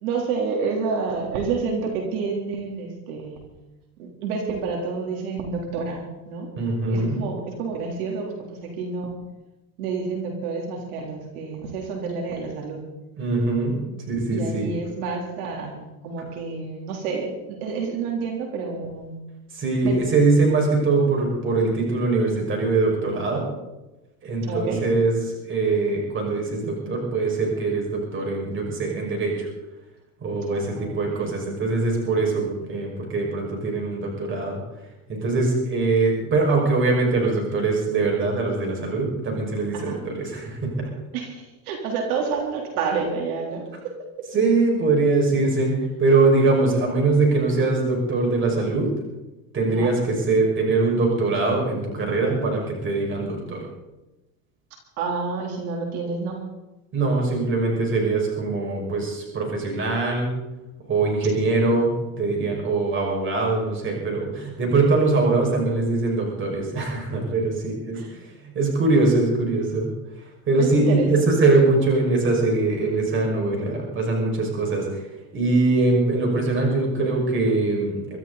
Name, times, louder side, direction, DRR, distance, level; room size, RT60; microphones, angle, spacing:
voice 1, 0.0-3.4 4.0-6.5 6.9-9.1 9.8-12.8 14.3-19.2 19.8-20.0 24.5-24.8 30.5-31.3 39.7-40.0 41.1-43.6 49.7-49.9 55.0-56.4 61.4-61.6 62.0-62.1 68.0-68.2 70.6-71.2, right 4 dB, 75° right, 1 dB, 3.7 m, -29 dB
voice 2, 6.6-7.2 13.2-14.7 19.5-23.5 24.2-29.5 30.2-34.6 35.1-40.9 44.3-49.0 49.5-53.6 56.9-60.3 60.9-69.9 70.5-75.0 75.3-78.2, right 3 dB, 25° right, 0 dB, 5.8 m, -22 dB
24.0 x 13.5 x 4.1 m, 1.0 s
supercardioid pair, 140°, 44 cm